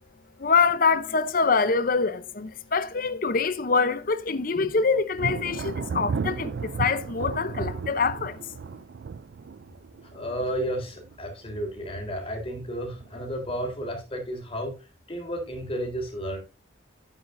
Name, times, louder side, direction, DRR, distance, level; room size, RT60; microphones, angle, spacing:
voice 1, 0.4-8.4, left 5 dB, 50° left, 0.7 m, -25 dB
Thunder, 5.1-11.6 12.0-12.5 13.0-13.8, right 5 dB, 65° right, 0.4 m, -34 dB
voice 2, 10.1-14.7 15.1-16.4, equal, 30° left, 3.6 m, -32 dB
11.5 x 8.6 x 2.6 m
head